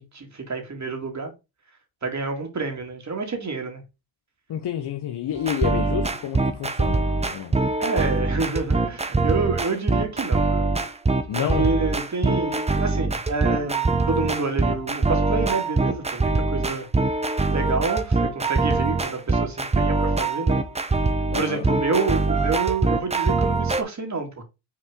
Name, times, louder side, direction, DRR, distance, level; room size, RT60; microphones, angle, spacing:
voice 1, 0.0-1.3 2.0-3.8 7.8-10.7 11.4-16.9 17.1-20.6 21.3-24.4, right 3 dB, 35° right, 2.6 m, -28 dB
voice 2, 4.5-7.6 11.3-11.7 21.3-21.7, left 10 dB, 50° left, 0.9 m, -29 dB
sound 1, 5.4-23.8, right 3 dB, 15° right, 0.7 m, -23 dB
6.3 x 4.3 x 3.7 m
cardioid pair, 85°, 50 cm